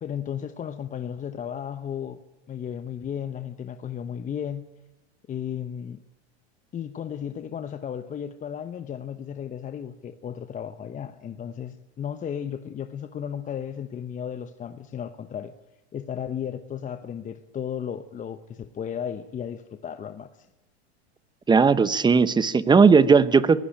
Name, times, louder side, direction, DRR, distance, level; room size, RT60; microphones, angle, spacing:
voice 1, 0.0-2.2 2.5-4.6 5.3-6.0 6.7-15.5 15.9-20.5, left 8 dB, 25° left, 10 dB, 1.0 m, -34 dB
voice 2, 21.5-23.6, right 5 dB, 15° right, 16 dB, 0.9 m, -17 dB
21.5 x 16.0 x 8.8 m, 1.0 s
hypercardioid pair, 115°, 33 cm